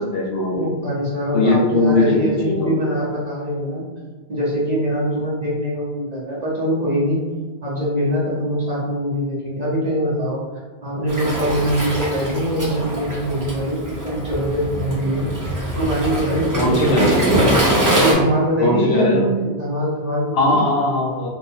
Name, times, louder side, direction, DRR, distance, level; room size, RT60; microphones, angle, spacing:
voice 1, 0.0-0.7 1.3-2.8 16.6-17.1 18.6-19.3 20.3-21.3, left 2 dB, 65° left, -2 dB, 0.8 m, -19 dB
voice 2, 0.5-3.8 4.3-7.2 7.6-10.4 10.8-15.3 15.8-17.4 18.0-20.6, right 1 dB, 40° right, -6 dB, 0.9 m, -23 dB
Waves surf, 11.1-18.1, right 1 dB, 20° right, 0.6 m, -22 dB
3.6 x 2.5 x 2.7 m, 1.4 s
omnidirectional pair, 1.1 m